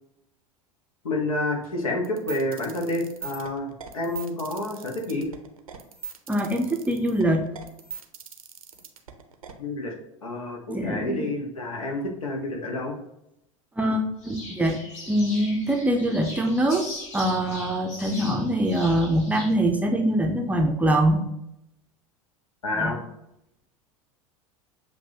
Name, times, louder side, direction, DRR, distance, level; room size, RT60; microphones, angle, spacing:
voice 1, 1.0-3.7 3.9-5.3 9.6-9.9 10.2-12.9 22.6-23.0, left 2 dB, 75° left, 1 dB, 1.2 m, -29 dB
sound 1, 2.0-9.5, right 7 dB, 80° right, 0.6 m, -40 dB
voice 2, 6.3-7.5 10.7-11.3 13.8-14.8 15.1-21.3 22.7-22.9, right 1 dB, 10° right, 1 dB, 0.6 m, -24 dB
sound 2, 14.2-19.5, left 2 dB, 40° left, 1.3 m, -40 dB
7.1 x 2.6 x 2.8 m, 0.82 s
figure-of-eight pair, 80°, 18 cm